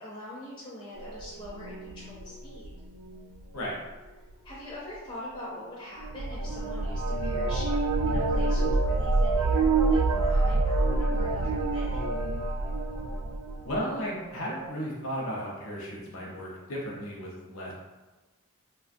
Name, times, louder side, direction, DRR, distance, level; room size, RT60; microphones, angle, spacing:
voice 1, 0.0-2.7 4.4-12.1, left 1 dB, 25° left, -6 dB, 0.4 m, -43 dB
sound 1, 0.9-3.4 6.0-13.8 14.1-14.7, right 3 dB, 85° right, 0.3 m, -27 dB
voice 2, 13.6-17.7, equal, 65° left, -4 dB, 0.6 m, -34 dB
3.0 x 2.2 x 2.5 m, 1.2 s
head